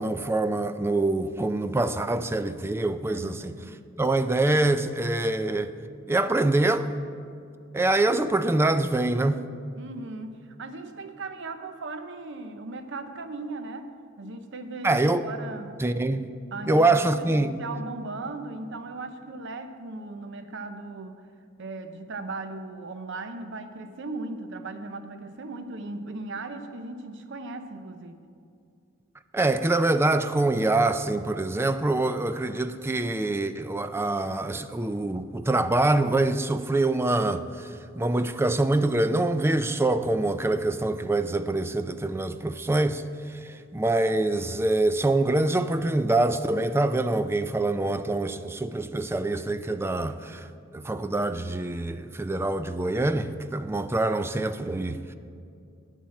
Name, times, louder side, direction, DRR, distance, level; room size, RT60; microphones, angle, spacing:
voice 1, 0.0-3.5 4.0-5.7 6.1-6.9 7.7-9.4 14.8-15.3 15.8-16.3 16.7-17.6 29.3-37.7 37.9-43.0 43.3-50.5 50.7-55.1, right 2 dB, 10° right, 0.3 m, -25 dB
voice 2, 3.1-3.8 9.8-13.9 14.2-15.8 16.5-21.2 21.6-28.2, right 3 dB, 60° right, 0.7 m, -37 dB
9.2 x 7.1 x 7.5 m
head